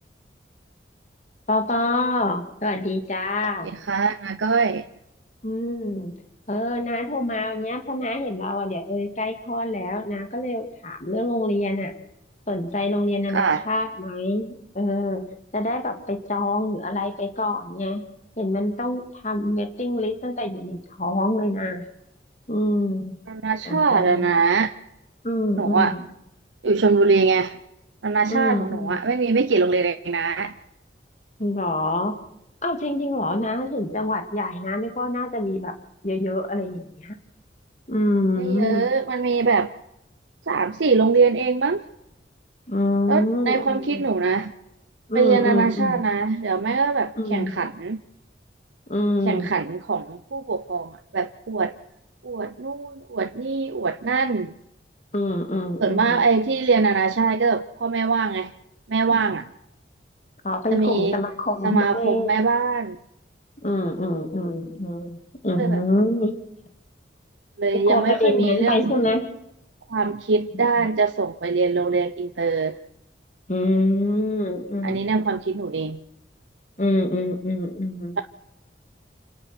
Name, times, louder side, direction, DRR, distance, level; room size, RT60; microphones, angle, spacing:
voice 1, 1.5-3.7 5.4-6.1 6.5-11.9 12.5-15.2 15.5-18.0 18.4-21.8 22.5-23.1 23.7-24.3 25.2-26.0 28.3-29.0 31.4-32.2 32.6-35.7 36.0-37.1 37.9-38.9 42.7-44.0 45.1-46.0 47.2-47.5 48.9-49.5 55.1-56.2 60.4-62.3 63.6-66.3 67.7-69.2 73.5-75.1 76.8-78.2, left 1 dB, 40° left, 2.3 m, -25 dB
voice 2, 3.6-4.9 13.3-13.6 23.3-24.7 25.6-25.9 26.6-27.6 28.0-30.5 38.4-39.7 40.5-41.8 43.1-44.5 45.1-48.0 49.2-51.7 52.2-54.5 55.8-58.5 58.9-59.5 60.7-61.2 61.6-63.0 65.6-65.8 67.6-69.0 69.9-72.8 74.8-76.0, right 4 dB, 90° right, 0.7 m, -22 dB
27.0 x 18.0 x 6.1 m
head